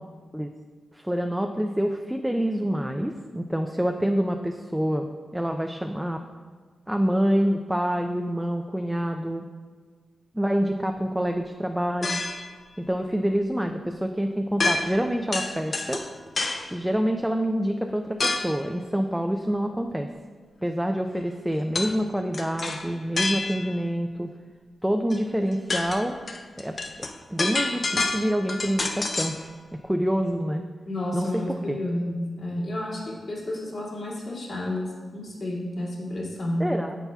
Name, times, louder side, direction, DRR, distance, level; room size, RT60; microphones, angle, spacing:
voice 1, 0.9-6.2 6.9-9.5 10.3-12.2 12.8-16.0 16.7-20.1 20.6-24.3 24.8-26.2 26.6-26.8 27.3-29.5 29.8-30.6 31.1-31.8 36.6-36.9, equal, 5° right, 4 dB, 0.3 m, -26 dB
sound 1, 12.0-12.5 14.6-15.1 15.3-16.7 18.2-18.6 21.8-22.0 22.3-23.8 25.1-25.2 25.5-29.4, left 3 dB, 45° left, 0.5 m, -28 dB
voice 2, 30.9-36.7, left 1 dB, 60° left, -7 dB, 2.2 m, -31 dB
9.8 x 7.0 x 2.3 m, 1.6 s
wide cardioid pair, 110°, 0 cm